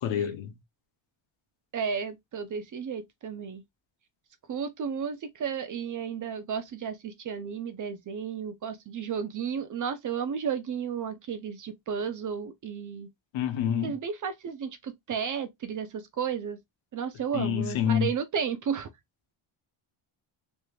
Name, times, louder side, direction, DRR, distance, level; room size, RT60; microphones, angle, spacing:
voice 1, 0.0-0.5 13.3-14.0 17.3-18.1, left 9 dB, 70° left, 0.8 m, -27 dB
voice 2, 1.7-3.6 4.5-13.1 13.8-16.6 16.9-18.9, right 7 dB, 40° right, 0.4 m, -33 dB
3.3 x 3.0 x 2.2 m
cardioid pair, 145°, 50 cm